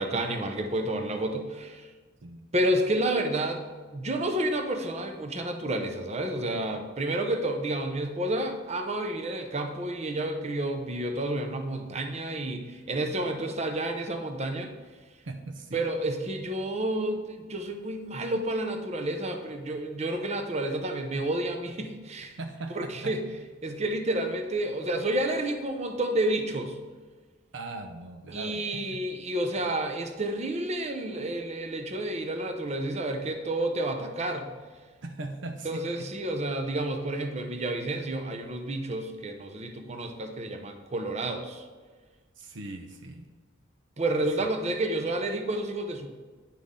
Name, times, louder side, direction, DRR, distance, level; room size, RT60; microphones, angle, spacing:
voice 1, 0.0-1.9 2.5-3.6 3.9-14.7 15.7-22.4 22.7-23.2 23.6-26.8 28.3-34.5 35.6-41.6 44.0-46.1, right 1 dB, 35° right, 4 dB, 0.8 m, -30 dB
voice 2, 15.2-15.8 22.4-23.2 27.5-29.0 35.0-36.1 42.4-43.3 44.4-44.5, right 2 dB, 70° right, 6 dB, 0.6 m, -39 dB
9.9 x 6.0 x 3.7 m, 1.4 s
head